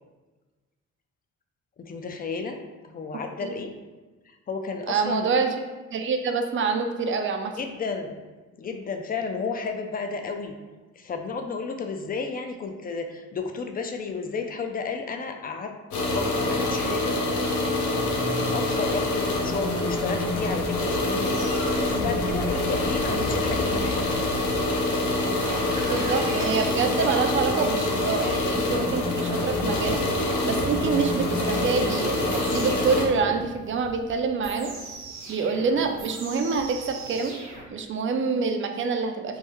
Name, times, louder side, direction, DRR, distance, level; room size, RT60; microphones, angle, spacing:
voice 1, 1.8-3.7 4.3-5.3 7.6-8.1 8.6-10.6 10.9-15.7 16.1-17.6 18.5-21.4 21.8-24.2, left 4 dB, 30° left, 5 dB, 0.4 m, -32 dB
voice 2, 4.9-5.5 5.9-7.5 25.9-30.0 30.4-34.7 35.3-37.4 37.7-39.4, right 5 dB, 40° right, 5 dB, 0.4 m, -26 dB
sound 1, 15.9-33.1, left 2 dB, 75° left, 0.8 m, -26 dB
sound 2, 20.0-37.6, right 1 dB, 70° right, 0.9 m, -39 dB
3.2 x 2.1 x 3.4 m, 1.2 s
cardioid pair, 90°, 30 cm